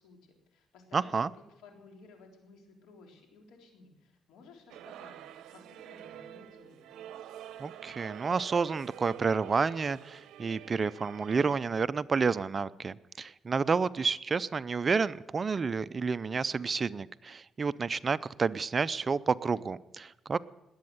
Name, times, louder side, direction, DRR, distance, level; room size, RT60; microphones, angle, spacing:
voice 1, 0.0-5.2 5.5-6.8, left 4 dB, 90° left, 3 dB, 3.7 m, -56 dB
voice 2, 0.9-1.3 7.6-20.4, right 5 dB, 35° right, 16 dB, 0.5 m, -30 dB
sound 1, 4.7-11.6, right 11 dB, 80° right, 0.8 m, -47 dB
20.5 x 8.7 x 8.0 m, 0.98 s
cardioid pair, 90°, 0 cm